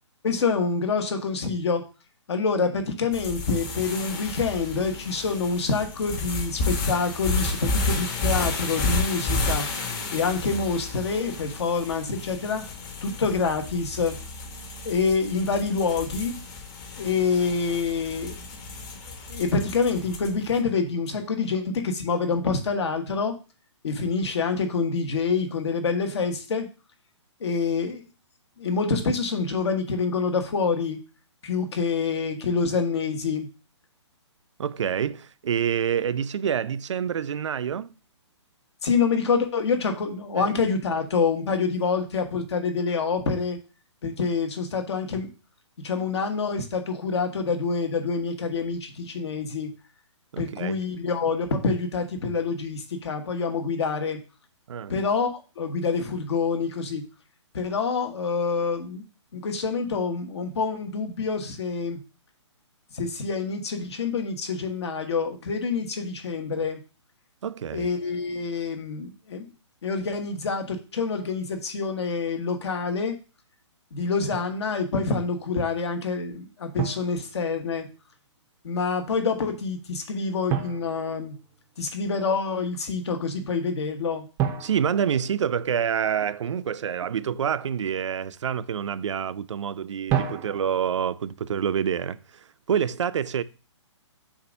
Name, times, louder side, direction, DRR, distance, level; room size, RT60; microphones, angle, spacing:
voice 1, 0.2-1.8 2.3-9.7 10.1-12.6 13.0-14.2 14.8-16.4 17.0-18.3 19.3-23.3 23.8-26.7 27.4-28.0 28.6-31.0 31.4-33.5 38.8-43.6 44.0-45.3 45.8-49.7 50.4-54.2 54.9-57.0 57.5-59.0 59.3-62.0 62.9-66.8 67.7-69.5 69.8-73.2 73.9-77.9 78.6-81.3 81.8-84.2, left 4 dB, 65° left, 1.3 m, -26 dB
sound 1, 3.1-20.5, left 3 dB, 35° left, 1.2 m, -31 dB
voice 2, 34.6-37.9 40.4-40.5 50.3-50.8 54.7-54.9 67.4-67.9 84.6-93.4, right 8 dB, 75° right, 0.5 m, -27 dB
Drum, 74.3-74.6 76.8-77.9 80.5-81.9 84.4-86.1 90.1-91.1, right 9 dB, 15° right, 0.5 m, -31 dB
7.1 x 2.6 x 5.1 m
hypercardioid pair, 145°, 15 cm